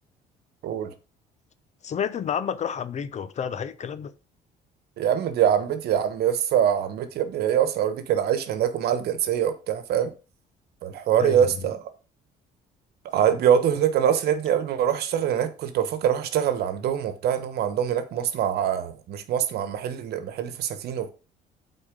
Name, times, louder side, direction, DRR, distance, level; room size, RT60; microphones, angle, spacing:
voice 1, 0.6-0.9 5.0-10.1 10.8-11.8 13.1-21.1, right 9 dB, 70° right, 1.2 m, -24 dB
voice 2, 1.8-4.1 11.2-11.4, left 8 dB, 45° left, 0.8 m, -30 dB
8.6 x 4.3 x 5.2 m
cardioid pair, 110°, 17 cm